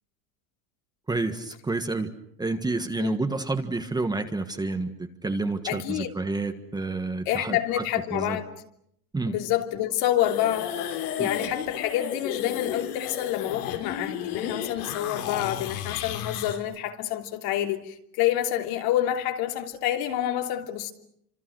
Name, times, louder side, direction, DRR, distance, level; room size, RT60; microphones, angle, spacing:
voice 1, 1.1-2.1 2.4-7.8 8.1-8.4 9.1-9.3 11.2-11.3, right 3 dB, 10° right, 1.6 m, -29 dB
voice 2, 5.7-6.1 7.2-8.5 9.3-10.7 11.2-20.9, left 12 dB, 55° left, 3.1 m, -28 dB
sound 1, 10.2-16.6, left 9 dB, 90° left, 5.7 m, -33 dB
30.0 x 26.5 x 6.3 m
supercardioid pair, 150°, 43 cm